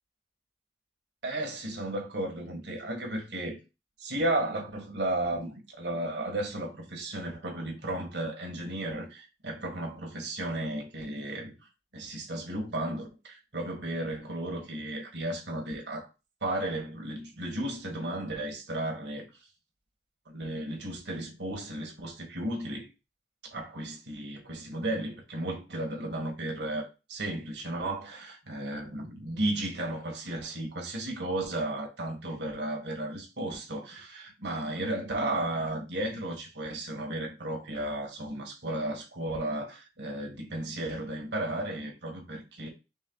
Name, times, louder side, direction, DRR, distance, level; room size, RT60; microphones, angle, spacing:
voice 1, 1.2-3.6 4.0-16.1 16.4-19.3 20.2-22.9 23.5-42.7, right 1 dB, 85° right, 1.7 m, -34 dB
5.5 x 3.7 x 2.3 m
head